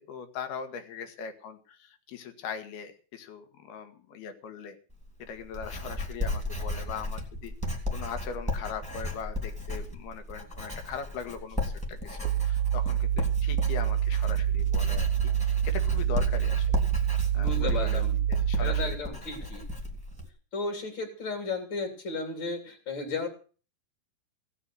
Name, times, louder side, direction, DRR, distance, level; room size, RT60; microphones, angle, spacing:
voice 1, 0.1-4.8 5.2-7.5 7.9-16.8 17.3-18.0 18.3-19.0, left 6 dB, 70° left, 8 dB, 3.6 m, -40 dB
Writing, 4.9-20.3, left 2 dB, ahead, 2.5 m, -35 dB
sound 1, 12.2-19.0, right 10 dB, 85° right, 1.6 m, -27 dB
voice 2, 17.3-18.2 18.6-19.6 20.5-23.3, left 3 dB, 30° left, 4 dB, 3.4 m, -34 dB
17.5 x 7.9 x 7.9 m, 0.39 s
omnidirectional pair, 4.8 m